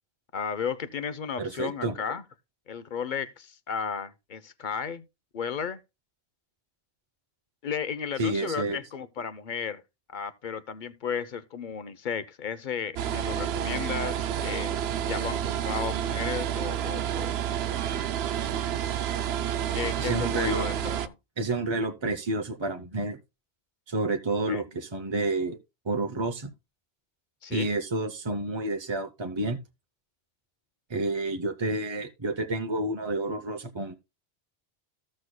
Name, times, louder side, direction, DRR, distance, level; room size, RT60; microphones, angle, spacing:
voice 1, 0.3-2.2 2.7-5.0 5.3-5.8 7.6-9.8 10.1-17.3 19.7-21.2 24.5-24.6 27.4-27.7, left 6 dB, 50° left, 0.8 m, -34 dB
voice 2, 1.4-2.0 8.2-8.8 20.0-20.7 21.4-23.2 23.9-25.6 25.8-26.5 27.5-29.6 30.9-33.9, right 2 dB, 30° right, 0.7 m, -29 dB
sound 1, 13.0-21.1, right 10 dB, 75° right, 0.8 m, -29 dB
15.0 x 6.4 x 2.2 m
omnidirectional pair, 1.1 m